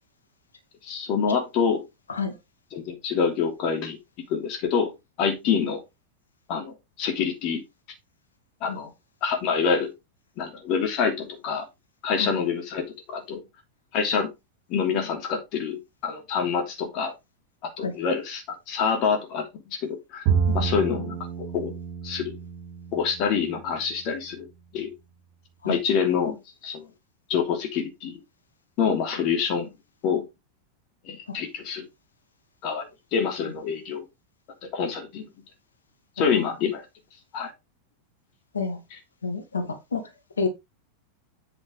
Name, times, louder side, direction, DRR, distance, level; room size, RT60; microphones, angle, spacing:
voice 1, 0.8-1.8 2.7-4.0 4.3-4.9 5.2-5.8 6.5-7.6 8.6-8.9 9.2-9.9 10.4-11.7 12.0-13.4 13.9-14.3 14.7-17.1 17.8-20.3 20.5-21.7 22.0-22.4 22.9-24.5 24.7-24.9 25.7-26.9 27.3-28.2 28.8-29.7 30.0-30.3 31.0-31.9 32.6-34.0 34.6-35.3 36.2-36.8 37.3-37.5 38.9-39.0, left 6 dB, 40° left, 2.8 m, -26 dB
Bowed string instrument, 20.3-23.7, right 6 dB, 40° right, 1.8 m, -28 dB
voice 2, 39.2-40.0 40.4-40.5, left 4 dB, 70° left, 2.1 m, -29 dB
8.4 x 6.6 x 3.4 m
figure-of-eight pair, 90°, 0 cm